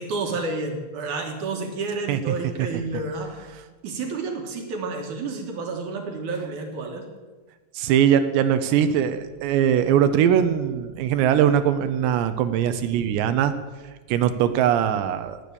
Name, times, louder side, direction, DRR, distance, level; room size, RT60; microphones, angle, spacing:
voice 1, 0.0-3.4 3.8-7.0, right 3 dB, 60° right, 3 dB, 2.3 m, -30 dB
voice 2, 2.1-2.8 7.7-13.5 14.1-15.4, right 9 dB, 80° right, 10 dB, 2.8 m, -21 dB
19.0 x 8.6 x 6.9 m, 1.3 s
omnidirectional pair, 5.3 m